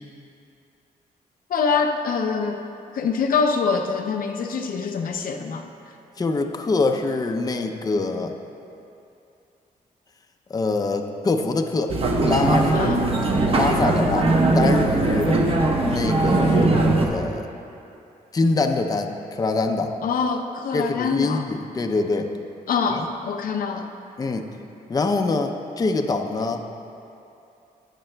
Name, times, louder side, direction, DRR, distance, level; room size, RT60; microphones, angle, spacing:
voice 1, 1.5-2.6 2.9-5.7 12.7-13.0 20.0-21.5 22.7-23.9, left 5 dB, 70° left, 4 dB, 0.6 m, -24 dB
voice 2, 6.2-8.3 10.5-13.2 13.5-15.4 15.9-16.7 17.1-17.5 18.3-19.9 20.7-22.3 22.9-23.1 24.2-24.5 24.9-26.6, left 3 dB, 25° left, 4 dB, 0.5 m, -24 dB
sound 1, 11.9-17.1, right 2 dB, 40° right, 0.9 m, -20 dB
18.0 x 6.7 x 2.2 m, 2.7 s
cardioid pair, 110°, 15 cm